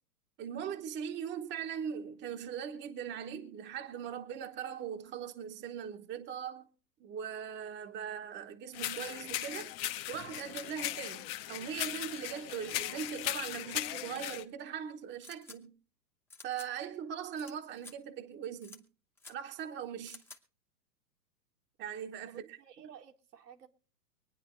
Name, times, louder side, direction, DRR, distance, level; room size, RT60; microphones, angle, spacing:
voice 1, 0.4-6.7 7.0-9.7 10.1-15.7 16.4-18.8 19.3-20.2 21.8-22.4, right 8 dB, 20° right, 1.0 m, -40 dB
sound 1, 8.7-14.4, left 15 dB, 35° left, 0.9 m, -38 dB
sound 2, 15.2-15.6 16.3-16.7 17.4-17.5 17.8-17.9 18.6-18.8 19.2-19.3 20.1-20.4, left 3 dB, 5° left, 0.9 m, -51 dB
voice 2, 22.3-23.7, right 9 dB, 70° right, 1.7 m, -53 dB
24.5 x 9.5 x 3.0 m
hypercardioid pair, 110°, 50 cm